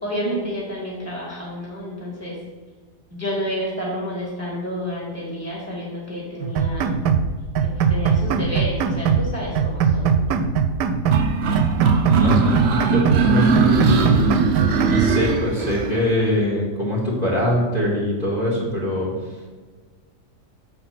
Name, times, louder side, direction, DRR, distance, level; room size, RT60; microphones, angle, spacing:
voice 1, 0.0-2.4 3.1-7.0 7.6-10.1, equal, 10° right, -4 dB, 1.7 m, -30 dB
sound 1, 6.4-7.3 7.6-9.3 9.6-11.3 11.6-13.3 13.6-15.0, right 6 dB, 90° right, 1.2 m, -20 dB
sound 2, 11.1-15.9, right 5 dB, 65° right, 0.6 m, -20 dB
voice 2, 12.0-14.4 14.9-19.1, left 1 dB, 25° left, -5 dB, 1.9 m, -23 dB
7.3 x 4.5 x 5.9 m, 1.4 s
omnidirectional pair, 1.8 m